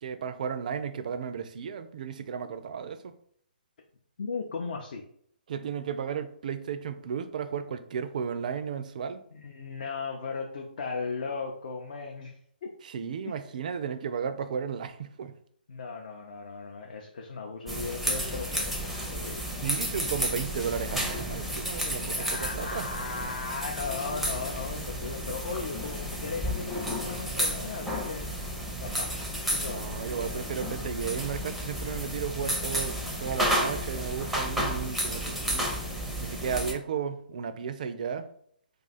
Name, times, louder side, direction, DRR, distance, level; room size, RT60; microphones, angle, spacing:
voice 1, 0.0-3.1 5.5-9.2 12.8-15.3 19.6-22.9 29.7-35.7 36.2-38.3, right 7 dB, 55° right, 0.4 m, -34 dB
voice 2, 4.2-5.1 9.3-12.7 13.3-13.4 15.7-19.4 19.8-20.1 22.0-28.3 28.8-29.8, left 4 dB, 60° left, 0.5 m, -37 dB
sound 1, 17.7-36.7, equal, ahead, 0.5 m, -32 dB
2.4 x 2.4 x 4.0 m
figure-of-eight pair, 135°, 5 cm